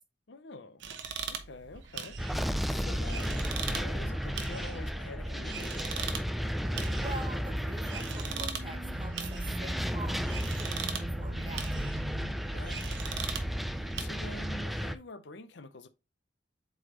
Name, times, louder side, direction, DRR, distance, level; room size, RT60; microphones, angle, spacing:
voice 1, 0.3-0.8 1.3-5.9 12.5-15.9, left 2 dB, 70° left, 0.7 m, -47 dB
sound 1, 0.8-14.1, right 6 dB, 85° right, 1.0 m, -41 dB
sound 2, 2.2-15.0, equal, ahead, 0.3 m, -34 dB
sound 3, 3.5-14.6, right 2 dB, 55° right, 0.7 m, -46 dB
voice 2, 7.0-12.0, right 2 dB, 25° right, 1.1 m, -45 dB
7.9 x 4.0 x 3.0 m
head